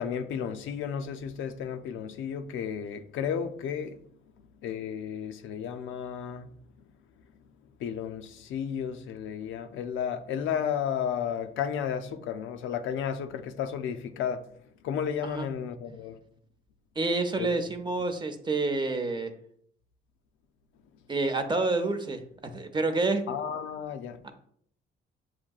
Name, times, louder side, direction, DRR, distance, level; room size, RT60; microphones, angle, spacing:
voice 1, 0.0-3.9 4.6-6.5 7.8-14.4 14.8-16.2 17.4-17.5 23.3-24.2, left 8 dB, 85° left, 0.4 m, -33 dB
voice 2, 17.0-19.3 21.1-22.2 22.5-23.2 24.2-24.3, right 3 dB, 25° right, 0.6 m, -28 dB
7.3 x 2.6 x 2.3 m
cardioid pair, 90°, 20 cm